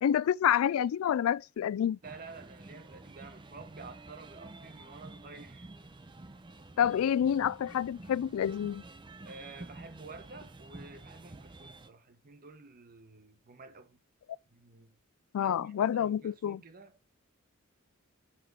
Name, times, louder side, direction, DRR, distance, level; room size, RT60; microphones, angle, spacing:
voice 1, 0.0-2.0 6.8-8.8 15.3-16.6, left 9 dB, 80° left, 0.3 m, -28 dB
sound 1, 2.0-11.9, right 2 dB, 20° right, 0.6 m, -50 dB
voice 2, 2.0-5.7 9.2-14.0 14.5-14.9 15.4-17.1, right 3 dB, 45° right, 1.0 m, -50 dB
7.5 x 5.1 x 4.6 m
head